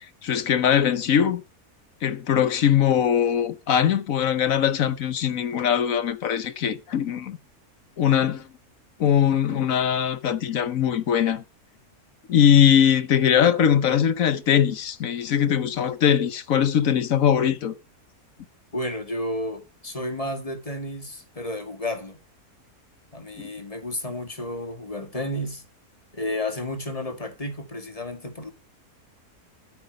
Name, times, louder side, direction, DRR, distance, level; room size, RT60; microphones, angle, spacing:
voice 1, 0.2-1.4 2.0-7.4 8.0-8.5 9.0-11.4 12.3-17.7 23.4-23.5, left 9 dB, 65° left, 1.3 m, -21 dB
voice 2, 18.7-22.2 23.1-25.6 26.1-28.5, left 1 dB, 25° left, 1.9 m, -32 dB
13.0 x 8.7 x 5.2 m
omnidirectional pair, 1.6 m